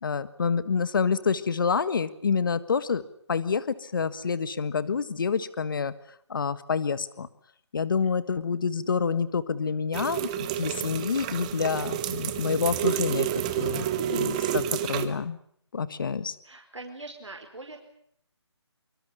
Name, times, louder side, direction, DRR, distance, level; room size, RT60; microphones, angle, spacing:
voice 1, 0.0-3.0 3.3-5.9 6.3-7.3 7.7-13.3 13.6-15.4 15.7-16.3, left 5 dB, 45° left, 14 dB, 1.6 m, -28 dB
sound 1, 9.9-15.1, right 11 dB, 15° right, 1.2 m, -29 dB
voice 2, 16.4-17.8, right 2 dB, 90° right, 3 dB, 4.6 m, -42 dB
25.0 x 24.0 x 6.9 m, 0.67 s
figure-of-eight pair, 165°, 15 cm